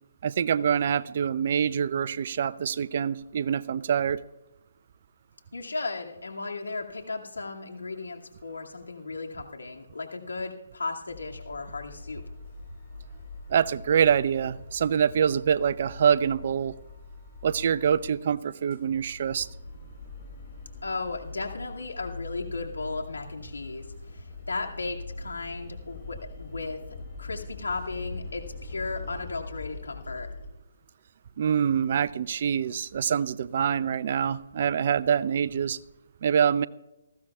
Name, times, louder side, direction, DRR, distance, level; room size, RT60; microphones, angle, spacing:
voice 1, 0.2-4.2 13.5-16.7 17.4-19.5 31.4-35.8 36.2-36.7, right 8 dB, 50° right, 17 dB, 0.5 m, -25 dB
voice 2, 5.5-12.2 20.8-23.8 24.1-26.8 27.2-30.3, left 3 dB, 85° left, 1 dB, 2.3 m, -35 dB
sound 1, 11.1-18.2 18.5-30.5, left 3 dB, 45° left, 4.1 m, -42 dB
19.5 x 15.0 x 2.4 m, 1.0 s
figure-of-eight pair, 145°, 0 cm